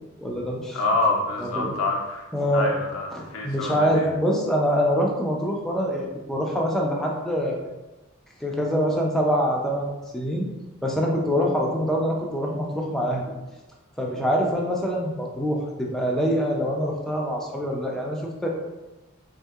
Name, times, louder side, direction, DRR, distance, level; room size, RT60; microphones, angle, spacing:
voice 1, 0.2-0.8 1.4-1.7 2.3-2.7 3.1-7.6 8.4-10.5 10.8-13.3 14.0-18.5, equal, ahead, -2 dB, 0.3 m, -25 dB
voice 2, 0.7-4.1, left 2 dB, 80° left, -1 dB, 0.4 m, -27 dB
3.5 x 2.6 x 2.3 m, 1.1 s
head